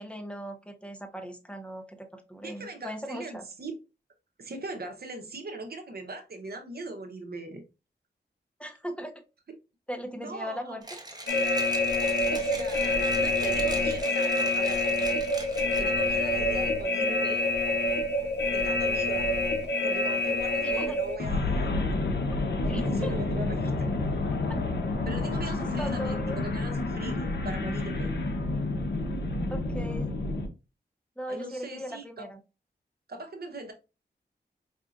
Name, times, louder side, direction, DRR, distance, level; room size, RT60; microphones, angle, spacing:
voice 1, 0.0-3.4 8.6-9.1 9.9-11.0 20.6-21.0 22.7-23.1 24.4-24.6 25.8-26.4 29.5-30.1 31.2-32.4, equal, 5° left, 0.8 m, -38 dB
voice 2, 2.4-3.7 4.4-7.6 10.2-10.8 12.3-14.8 15.7-17.5 18.5-19.4 19.8-21.9 22.6-23.9 25.0-28.1 31.3-32.2 33.1-33.7, right 2 dB, 65° right, 0.8 m, -40 dB
Mechanisms, 10.8-16.1, right 2 dB, 20° right, 1.0 m, -42 dB
sound 1, 11.3-30.5, left 2 dB, 75° left, 0.7 m, -28 dB
4.9 x 2.7 x 2.4 m
wide cardioid pair, 85°, 18 cm